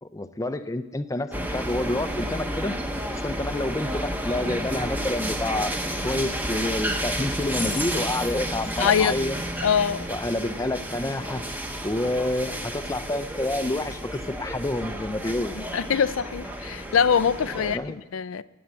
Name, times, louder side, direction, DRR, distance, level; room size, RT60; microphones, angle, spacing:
voice 1, 0.0-2.8 3.1-5.7 6.0-9.4 10.1-11.4 11.8-15.6 17.6-18.0, left 1 dB, 15° left, 10 dB, 0.5 m, -28 dB
sound 1, 1.3-17.8, equal, 10° right, 0.9 m, -31 dB
voice 2, 8.8-9.2 9.6-10.1 15.6-17.8 18.1-18.4, left 7 dB, 85° left, 14 dB, 0.4 m, -23 dB
15.5 x 8.6 x 8.2 m, 1.2 s
head